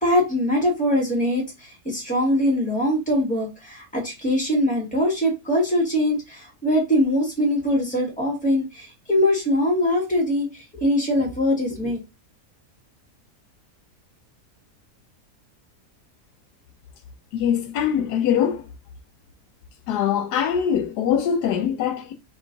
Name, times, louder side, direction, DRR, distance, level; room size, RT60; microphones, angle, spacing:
voice 1, 0.0-12.0, left 1 dB, 5° left, 1.6 m, -22 dB
voice 2, 17.3-18.7 19.9-22.1, left 8 dB, 80° left, 1.2 m, -22 dB
3.6 x 3.1 x 3.8 m
omnidirectional pair, 1.7 m